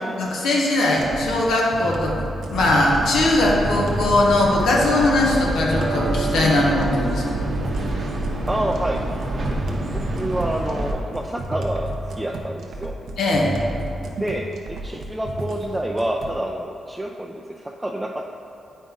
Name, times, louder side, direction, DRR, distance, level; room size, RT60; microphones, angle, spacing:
voice 1, 0.2-2.2 2.5-7.5 13.2-13.5, left 2 dB, 90° left, -3 dB, 1.3 m, -20 dB
sound 1, 1.0-16.4, right 1 dB, 80° right, 0.9 m, -32 dB
sound 2, 2.5-10.9, right 1 dB, 55° right, 1.0 m, -27 dB
voice 2, 8.5-9.1 9.3-12.9 14.2-18.3, right 1 dB, 15° right, 0 dB, 0.5 m, -28 dB
8.4 x 5.2 x 3.9 m, 2.6 s
cardioid pair, 65°, 0 cm